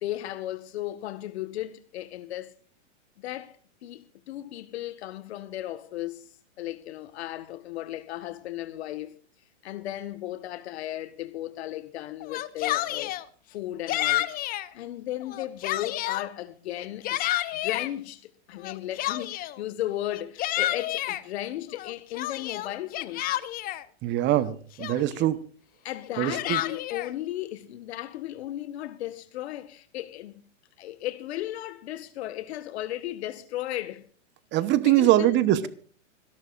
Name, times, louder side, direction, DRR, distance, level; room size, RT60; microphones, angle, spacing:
voice 1, 0.0-2.5 3.2-6.2 6.6-9.2 9.6-13.1 13.5-14.3 14.7-17.2 17.5-23.4 25.8-30.4 30.8-34.1 34.8-35.7, left 14 dB, 60° left, 1.6 m, -35 dB
Yell, 12.2-13.2 13.9-14.7 15.2-16.3 16.8-17.9 18.6-19.6 20.1-21.2 21.8-23.8 24.4-24.5 24.8-25.3 26.0-27.1, left 15 dB, 25° left, 0.7 m, -30 dB
voice 2, 24.0-25.4 26.2-26.6 34.5-35.7, right 14 dB, 30° right, 1.0 m, -22 dB
25.5 x 11.5 x 2.5 m
hypercardioid pair, 120°, 37 cm